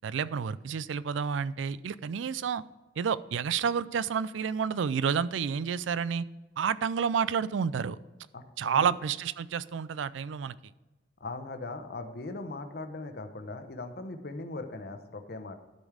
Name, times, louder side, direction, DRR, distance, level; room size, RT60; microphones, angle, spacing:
voice 1, 0.0-2.6 3.0-6.3 6.6-8.0 8.6-10.6, right 6 dB, 80° right, 18 dB, 0.4 m, -30 dB
voice 2, 8.3-8.9 11.2-15.6, left 2 dB, 55° left, 7 dB, 0.9 m, -39 dB
12.0 x 5.3 x 4.8 m, 1.1 s
head